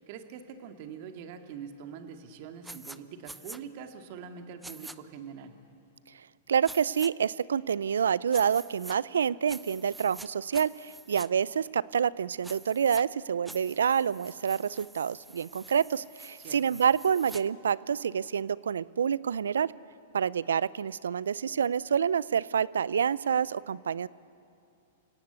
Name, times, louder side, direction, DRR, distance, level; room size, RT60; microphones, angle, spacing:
voice 1, 0.0-5.5 16.4-16.8, right 7 dB, 50° right, 6 dB, 2.2 m, -44 dB
sound 1, 2.6-3.0 3.2-3.6 4.6-5.0 6.6-7.1 8.3-9.0 9.5-10.3 10.5-11.3 12.4-13.0 13.5-17.4, right 2 dB, 5° right, 0.8 m, -47 dB
voice 2, 6.5-19.7 20.1-24.1, right 7 dB, 80° right, 21 dB, 0.5 m, -28 dB
29.0 x 17.5 x 8.2 m, 2.6 s
hypercardioid pair, 110°, 0 cm